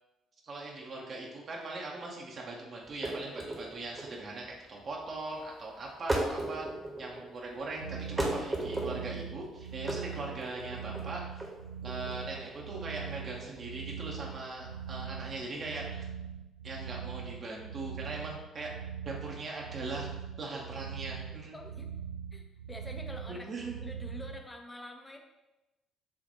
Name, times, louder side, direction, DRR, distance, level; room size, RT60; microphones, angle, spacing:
voice 1, 0.5-4.4 4.7-6.7 7.0-11.2 11.8-16.0 16.6-18.7 19.0-20.1 20.4-21.6 23.3-23.7, right 2 dB, 45° right, -2 dB, 0.8 m, -40 dB
sound 1, 2.9-15.8, right 2 dB, 20° right, 1.0 m, -37 dB
sound 2, 7.8-24.4, right 7 dB, 85° right, 0.3 m, -42 dB
voice 2, 21.5-21.9 22.3-25.2, left 1 dB, 15° left, 4 dB, 0.7 m, -47 dB
6.9 x 2.5 x 2.7 m, 1.0 s
figure-of-eight pair, 50°, 0 cm